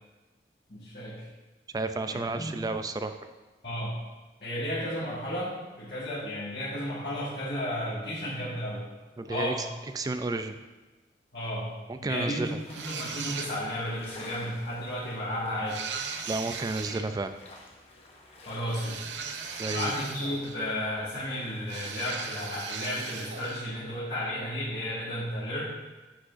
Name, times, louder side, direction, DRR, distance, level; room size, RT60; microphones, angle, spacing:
voice 1, 0.7-1.3 2.1-2.6 3.6-3.9 4.4-8.8 9.3-9.6 11.3-11.7 12.0-15.8 18.4-19.0 19.6-25.6, left 1 dB, 60° left, -9 dB, 1.6 m, -33 dB
voice 2, 1.7-3.2 9.2-9.5 9.9-10.5 11.9-12.6 16.3-17.3 19.6-19.9, right 2 dB, 20° right, 9 dB, 0.3 m, -31 dB
sound 1, 12.6-22.5, left 2 dB, 35° left, 0.8 m, -52 dB
sound 2, 12.7-13.9 15.7-17.1 18.7-20.7 21.7-23.7, right 6 dB, 85° right, 0.5 m, -38 dB
10.0 x 5.0 x 2.5 m, 1.2 s
head